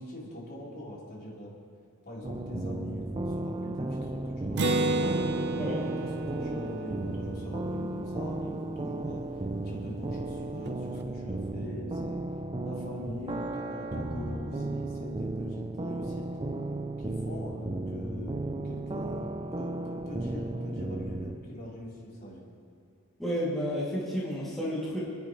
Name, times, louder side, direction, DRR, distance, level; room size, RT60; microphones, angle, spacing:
voice 1, 0.0-1.5 2.0-5.1 5.5-9.2 9.6-12.2 12.6-16.3 17.0-22.5, left 1 dB, 45° left, -6 dB, 3.9 m, -42 dB
sound 1, 2.2-21.4, right 2 dB, 25° right, 0.5 m, -34 dB
Acoustic guitar, 4.6-8.2, right 2 dB, 50° right, 0.8 m, -31 dB
voice 2, 23.2-25.0, equal, ahead, -9 dB, 2.6 m, -31 dB
28.5 x 10.5 x 3.2 m, 2.3 s
head